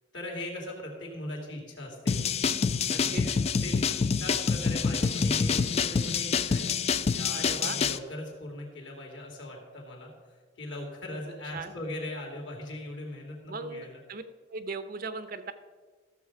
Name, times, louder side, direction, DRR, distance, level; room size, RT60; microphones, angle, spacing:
voice 1, 0.1-2.2 2.9-3.3 3.6-3.9 4.2-6.7 7.1-14.0, left 1 dB, 70° left, 0 dB, 2.8 m, -39 dB
sound 1, 2.1-8.0, left 5 dB, 35° left, 0.3 m, -27 dB
voice 2, 2.9-3.2 7.3-7.8 11.5-11.7 13.5-14.2 14.5-15.5, right 4 dB, 50° right, 11 dB, 0.7 m, -38 dB
14.0 x 7.1 x 4.7 m, 1.5 s
head